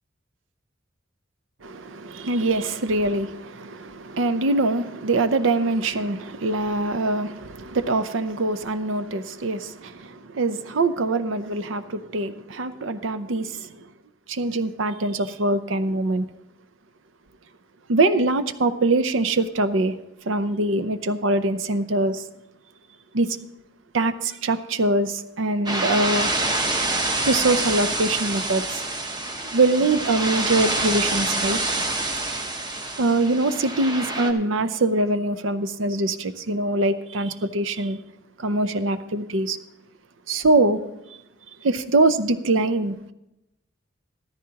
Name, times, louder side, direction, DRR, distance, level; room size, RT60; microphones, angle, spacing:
voice 1, 1.6-13.9 14.3-16.3 17.9-19.9 20.3-22.2 23.1-23.4 23.9-26.3 27.2-28.8 29.5-31.6 33.0-38.0 38.4-39.6 40.3-40.8 41.6-43.1, right 2 dB, 80° right, 12 dB, 0.6 m, -23 dB
sound 1, 25.7-34.3, right 2 dB, 20° right, 0.9 m, -26 dB
14.0 x 13.0 x 2.9 m, 0.90 s
head